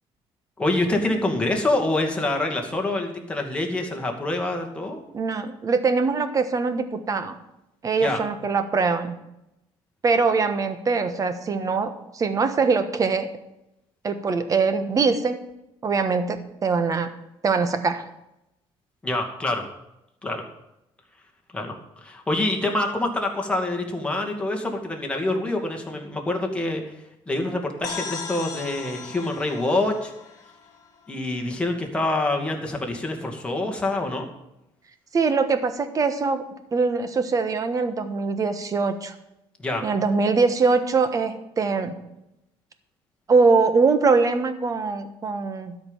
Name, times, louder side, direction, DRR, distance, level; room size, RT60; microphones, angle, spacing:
voice 1, 0.6-5.0 8.0-8.2 19.0-19.6 20.2-20.4 21.5-26.9 27.3-30.1 31.1-34.3 39.6-39.9, left 2 dB, 10° left, 1 dB, 2.2 m, -26 dB
voice 2, 5.1-7.3 7.8-9.1 10.0-13.3 14.0-15.4 15.8-17.1 17.4-18.0 35.1-36.4 36.7-39.1 39.8-41.9 43.3-45.7, right 4 dB, 30° right, 10 dB, 1.3 m, -22 dB
sound 1, 27.8-31.5, left 5 dB, 35° left, 2.0 m, -37 dB
12.5 x 5.3 x 9.1 m, 0.88 s
cardioid pair, 125°, 11 cm